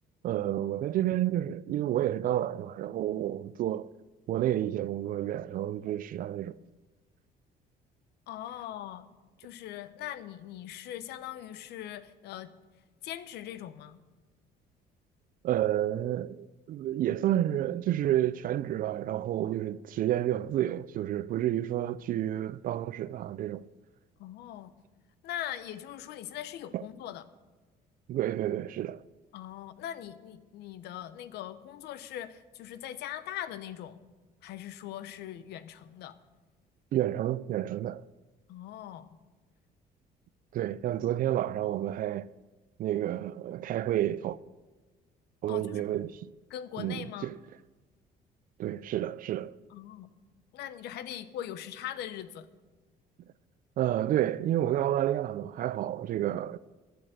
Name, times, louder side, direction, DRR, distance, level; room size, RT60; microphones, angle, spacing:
voice 1, 0.2-3.9 4.3-6.5 15.4-23.7 26.7-26.8 28.1-29.0 36.9-38.0 40.5-42.3 42.8-44.4 45.4-46.3 46.8-47.4 48.6-49.6 53.8-56.6, right 12 dB, 55° right, 0.4 m, -30 dB
voice 2, 8.3-9.1 9.4-12.5 13.0-14.0 24.2-24.7 25.2-27.2 29.3-34.0 34.4-36.2 38.5-39.2 40.9-41.0 45.5-45.8 46.5-47.3 49.7-50.1 50.5-52.5, left 11 dB, 80° left, 0.8 m, -41 dB
11.5 x 7.6 x 7.8 m
cardioid pair, 110°, 17 cm